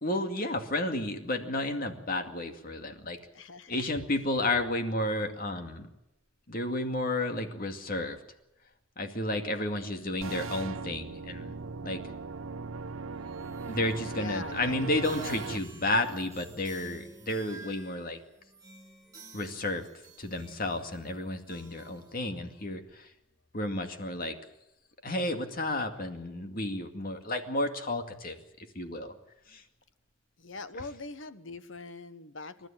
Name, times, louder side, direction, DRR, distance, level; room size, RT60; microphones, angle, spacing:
voice 1, 0.0-3.2 3.7-5.9 6.5-8.2 9.0-11.6 11.8-12.0 13.7-18.2 19.3-19.9 20.2-23.1 23.5-24.4 25.0-29.1 29.5-29.6, left 1 dB, 45° left, 6 dB, 2.3 m, -32 dB
voice 2, 3.3-3.9 10.0-10.6 14.0-15.5 30.4-32.7, left 3 dB, 65° left, 12 dB, 1.3 m, -43 dB
sound 1, 10.2-15.6, right 4 dB, 85° right, 0.7 m, -39 dB
sound 2, 13.1-22.7, right 3 dB, 15° right, 5.0 m, -51 dB
28.0 x 12.5 x 9.0 m, 0.90 s
head